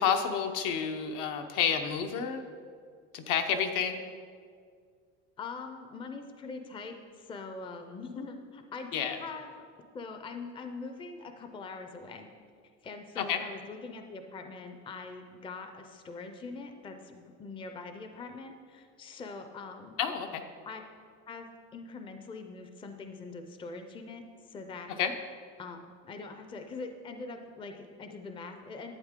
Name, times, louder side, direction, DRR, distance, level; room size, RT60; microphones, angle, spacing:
voice 1, 0.0-2.4 3.1-4.0 8.9-9.2 13.2-13.4 20.0-20.4 25.0-25.1, left 7 dB, 70° left, 6 dB, 0.9 m, -29 dB
voice 2, 5.4-9.6 9.9-12.3 12.8-20.0 20.6-20.8 21.3-24.9 25.6-25.8 26.0-28.9, left 4 dB, 15° left, 6 dB, 0.5 m, -43 dB
11.5 x 8.6 x 3.7 m, 2.1 s
cardioid pair, 165°, 32 cm